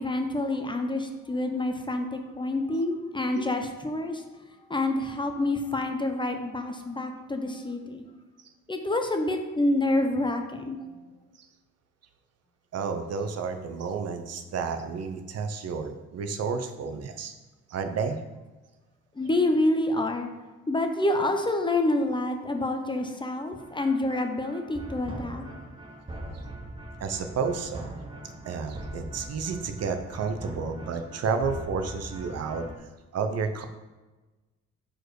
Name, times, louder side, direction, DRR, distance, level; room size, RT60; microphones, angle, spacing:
voice 1, 0.0-4.2 4.7-8.0 8.7-10.9 19.2-20.3 20.7-25.4, left 2 dB, 15° left, 5 dB, 0.6 m, -27 dB
voice 2, 12.7-17.3 17.7-18.2 27.0-27.9 28.5-32.6 33.1-33.7, right 5 dB, 55° right, 8 dB, 0.6 m, -31 dB
sound 1, 23.6-32.8, right 1 dB, 15° right, 0.9 m, -41 dB
4.5 x 4.4 x 4.7 m, 1.2 s
cardioid pair, 90°, 30 cm